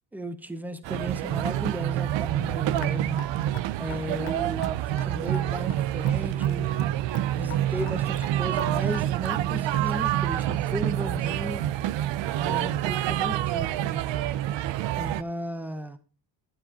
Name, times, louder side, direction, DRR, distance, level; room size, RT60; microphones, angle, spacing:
voice 1, 0.1-3.2 3.8-6.7 7.4-11.7 12.4-14.0 15.0-16.0, equal, 5° right, 0.8 m, -35 dB
sound 1, 0.8-15.2, right 13 dB, 65° right, 0.6 m, -27 dB
Raindrop / Drip, 2.8-10.1, left 15 dB, 85° left, 0.7 m, -45 dB
12.0 x 10.0 x 2.9 m
cardioid pair, 135°, 47 cm